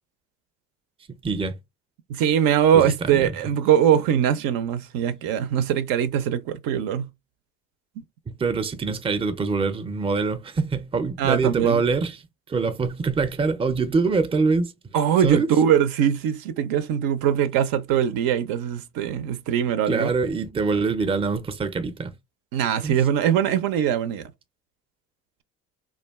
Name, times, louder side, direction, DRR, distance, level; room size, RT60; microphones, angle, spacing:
voice 1, 1.1-1.6 2.7-3.3 8.4-12.2 12.5-14.7 15.2-15.5 19.9-22.1 22.8-22.9, right 4 dB, 15° right, 0.5 m, -24 dB
voice 2, 2.1-7.1 11.2-11.8 14.9-20.1 22.5-24.3, right 9 dB, 70° right, 0.5 m, -22 dB
2.4 x 2.3 x 3.4 m
hypercardioid pair, 60°, 36 cm